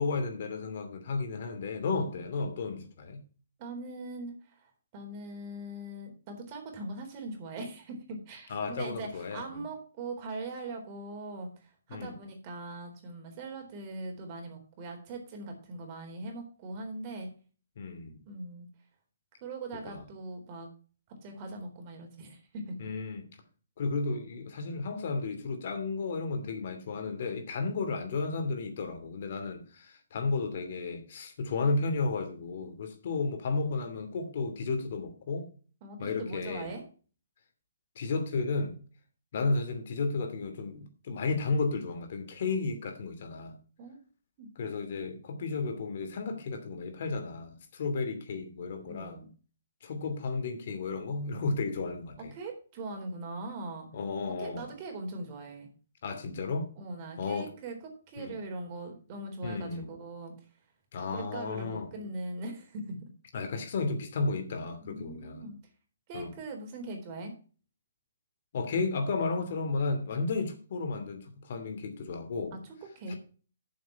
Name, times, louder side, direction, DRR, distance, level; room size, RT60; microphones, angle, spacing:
voice 1, 0.0-3.2 8.5-9.6 11.9-12.1 17.8-18.2 19.7-20.0 22.8-23.2 23.8-35.5 36.0-36.7 38.0-38.8 39.3-43.5 44.6-49.2 49.8-52.3 53.9-54.7 56.0-56.7 57.2-57.5 58.2-58.3 59.4-59.9 60.9-61.9 63.3-65.4 66.1-66.3 68.5-72.5 73.1-73.2, left 3 dB, 55° left, 2.7 m, -33 dB
voice 2, 3.6-17.3 18.3-18.7 19.4-20.7 21.2-22.7 35.8-36.8 43.8-44.0 44.4-44.5 48.9-49.3 52.2-53.9 54.4-55.7 56.8-57.8 58.1-60.3 61.1-63.1 64.8-65.5 66.1-67.3 72.6-73.2, right 2 dB, 35° right, 3.9 m, -41 dB
9.4 x 7.2 x 5.9 m
figure-of-eight pair, 130°, 0 cm